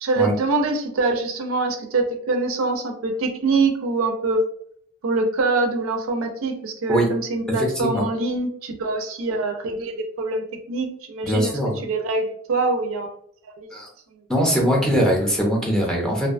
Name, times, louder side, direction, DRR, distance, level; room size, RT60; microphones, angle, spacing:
voice 1, 0.0-4.5 5.0-11.5 11.8-13.1 13.6-13.7 14.4-14.5, right 3 dB, 70° right, 4 dB, 0.4 m, -24 dB
voice 2, 7.6-8.0 11.2-11.7 13.7-13.9 14.3-16.3, equal, 5° left, -2 dB, 0.5 m, -21 dB
2.6 x 2.1 x 2.4 m, 0.63 s
head